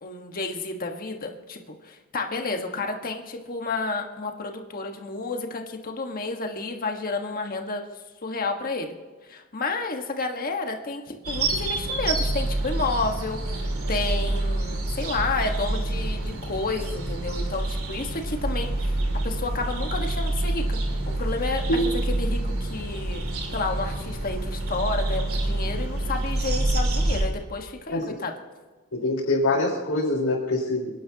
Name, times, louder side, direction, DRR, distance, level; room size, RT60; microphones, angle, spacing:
voice 1, 0.0-7.8 8.2-9.0 9.3-19.0 19.2-20.8 21.1-23.2 23.5-28.3, left 3 dB, 40° left, 3 dB, 1.6 m, -31 dB
sound 1, 11.2-27.3, right 2 dB, 75° right, 2.7 m, -27 dB
voice 2, 28.9-30.9, left 1 dB, 90° left, -9 dB, 4.8 m, -24 dB
28.5 x 11.0 x 2.9 m, 1.3 s
head